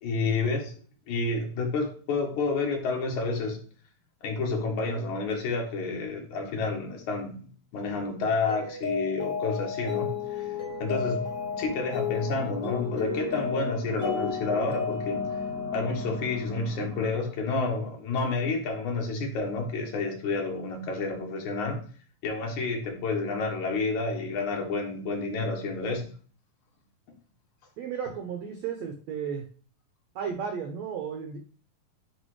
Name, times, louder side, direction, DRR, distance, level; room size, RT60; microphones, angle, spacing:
voice 1, 0.0-0.7 1.1-3.6 4.2-7.4 7.7-10.5 10.8-11.2 11.6-15.3 15.7-21.8 22.2-26.1, left 3 dB, 65° left, 2 dB, 2.3 m, -29 dB
Mallet percussion, 8.5-16.6, left 7 dB, 35° left, 1.2 m, -33 dB
sound 1, 9.8-17.1, equal, 50° right, 1.4 m, -42 dB
voice 2, 27.8-29.4 30.1-31.4, right 7 dB, 85° right, 4 dB, 1.5 m, -34 dB
9.7 x 3.4 x 3.1 m, 0.41 s
omnidirectional pair, 4.1 m